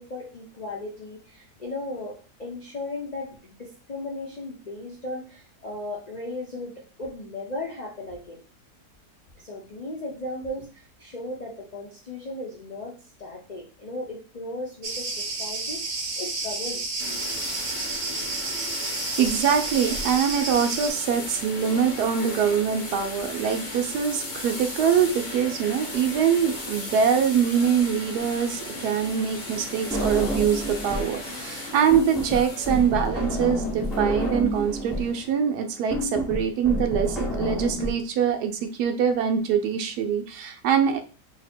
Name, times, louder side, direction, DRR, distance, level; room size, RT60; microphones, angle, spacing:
voice 1, 0.0-8.4 9.4-17.0, left 2 dB, 70° left, -2 dB, 0.4 m, -36 dB
Cricket, 14.8-20.9, right 3 dB, 55° right, 0.8 m, -31 dB
sound 1, 17.0-35.3, left 2 dB, 35° left, 0.8 m, -36 dB
voice 2, 19.2-41.0, right 7 dB, 75° right, 6 dB, 1.1 m, -24 dB
sound 2, 29.9-31.2 31.4-37.9, equal, ahead, 0.5 m, -29 dB
2.9 x 2.7 x 4.2 m, 0.36 s
omnidirectional pair, 1.8 m